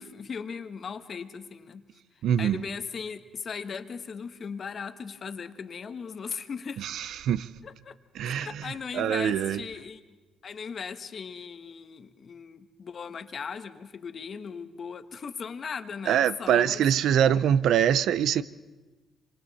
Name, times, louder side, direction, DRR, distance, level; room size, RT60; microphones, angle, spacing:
voice 1, 0.0-1.9 2.4-6.9 7.6-8.0 8.2-10.0 10.4-16.8, left 6 dB, 50° left, 1.3 m, -38 dB
voice 2, 2.2-2.7 6.8-7.5 8.2-9.6 16.1-18.4, right 9 dB, 75° right, 0.6 m, -24 dB
26.0 x 25.5 x 4.2 m
cardioid pair, 90°, 0 cm